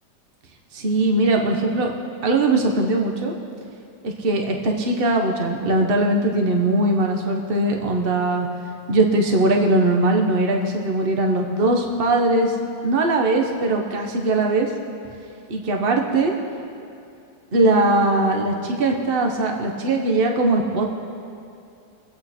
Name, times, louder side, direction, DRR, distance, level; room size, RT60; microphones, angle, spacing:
voice 1, 0.7-1.9 2.2-3.3 4.0-8.5 8.9-14.7 15.5-16.3 17.5-20.9, right 2 dB, 35° right, 2 dB, 1.4 m, -20 dB
23.5 x 8.6 x 4.4 m, 2.6 s
omnidirectional pair, 1.7 m